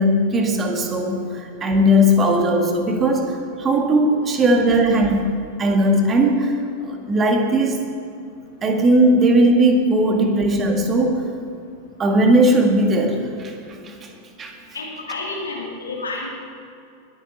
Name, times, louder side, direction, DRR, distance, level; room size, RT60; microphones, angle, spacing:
voice 1, 0.0-5.3 5.6-6.6 6.8-7.8 8.6-11.3 12.0-13.5 13.8-14.1 14.4-14.5, right 1 dB, 25° right, 3 dB, 1.9 m, -18 dB
voice 2, 14.7-16.3, left 3 dB, 75° left, -3 dB, 2.8 m, -30 dB
20.5 x 9.6 x 4.3 m, 2.6 s
figure-of-eight pair, 90°, 0 cm